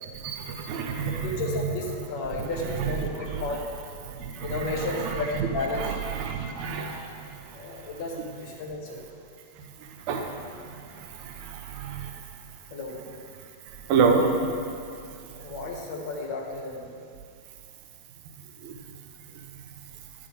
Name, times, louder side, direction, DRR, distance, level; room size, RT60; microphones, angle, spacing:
voice 1, 0.1-1.3 2.7-3.6 4.0-8.0 9.9-12.1 13.9-14.6 18.6-18.8 19.3-19.4, right 5 dB, 45° right, 3 dB, 0.7 m, -29 dB
voice 2, 1.0-3.7 4.4-5.9 7.5-9.0 12.7-13.0 15.4-17.0, left 3 dB, 45° left, 0 dB, 1.2 m, -33 dB
10.0 x 3.6 x 5.3 m, 2.4 s
figure-of-eight pair, 90°, 0 cm